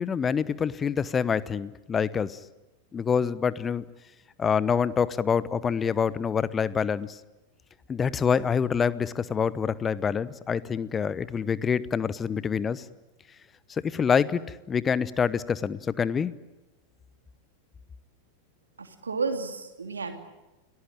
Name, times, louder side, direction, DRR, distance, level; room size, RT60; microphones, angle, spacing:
voice 1, 0.0-2.4 2.9-3.8 4.4-7.2 7.9-12.8 13.7-16.3, left 6 dB, 20° left, 18 dB, 1.0 m, -26 dB
voice 2, 18.8-20.2, right 4 dB, 75° right, 6 dB, 3.0 m, -32 dB
29.5 x 19.0 x 9.0 m, 1.0 s
figure-of-eight pair, 90°, 0 cm